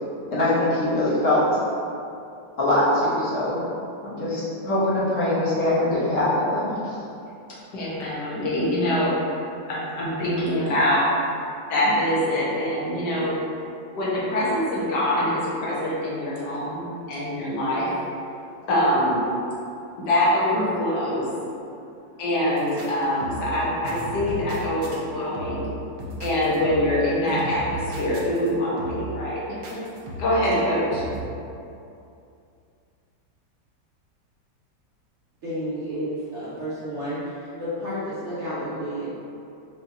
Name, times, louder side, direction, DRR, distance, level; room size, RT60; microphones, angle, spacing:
voice 1, 0.3-1.5 2.6-3.6 4.0-7.0, left 1 dB, 55° left, -10 dB, 1.1 m, -22 dB
voice 2, 7.7-9.2 9.7-13.3 13.9-16.8 17.1-17.9 18.7-19.2 20.1-21.3 22.2-25.7 26.2-29.4 29.7-29.8 30.2-31.0, left 1 dB, 75° left, -6 dB, 1.3 m, -24 dB
sound 1, 22.6-22.9 23.2-23.6 23.8-25.0 25.3-25.7 26.0-27.0 27.3-28.5 28.8-29.2 29.6-30.4 30.9-31.2, right 2 dB, 80° right, 1.2 m, -35 dB
voice 3, 35.4-37.3 37.6-39.1, equal, 55° right, -11 dB, 0.9 m, -31 dB
4.1 x 2.7 x 2.4 m, 2.6 s
omnidirectional pair, 1.8 m